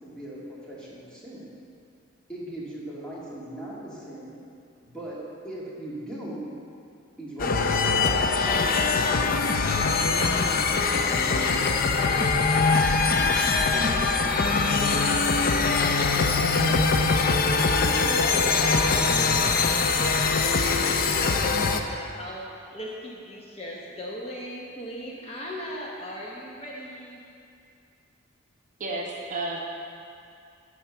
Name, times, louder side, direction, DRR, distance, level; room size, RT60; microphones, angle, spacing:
voice 1, 0.0-1.5 2.3-4.4 4.8-5.2 5.4-6.5 7.2-9.6 10.0-12.1 12.4-13.3 14.0-14.4, right 1 dB, 5° left, -8 dB, 2.1 m, -39 dB
sound 1, 7.4-21.8, left 4 dB, 45° left, 0.5 m, -22 dB
voice 2, 17.5-27.2, equal, 30° left, -3 dB, 0.9 m, -37 dB
voice 3, 28.8-29.6, right 2 dB, 40° right, -2 dB, 1.0 m, -31 dB
10.5 x 4.5 x 6.9 m, 2.5 s
head